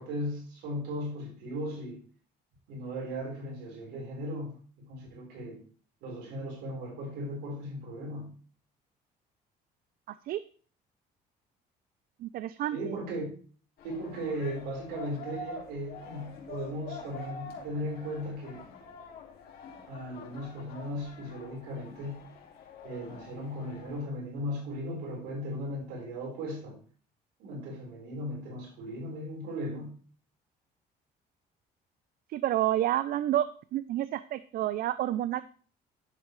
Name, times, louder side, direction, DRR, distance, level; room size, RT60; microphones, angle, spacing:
voice 1, 0.0-2.0 2.7-5.6 6.0-8.3 12.7-13.3 13.8-18.6 19.9-22.2 22.8-26.8 27.4-29.9, equal, 90° right, -1 dB, 4.3 m, -37 dB
voice 2, 12.2-13.0 32.3-33.5 33.7-35.4, right 13 dB, 60° right, 14 dB, 0.5 m, -29 dB
sound 1, 13.8-24.0, left 3 dB, 65° left, 2.2 m, -46 dB
10.5 x 7.3 x 3.2 m, 0.42 s
cardioid pair, 110°, 17 cm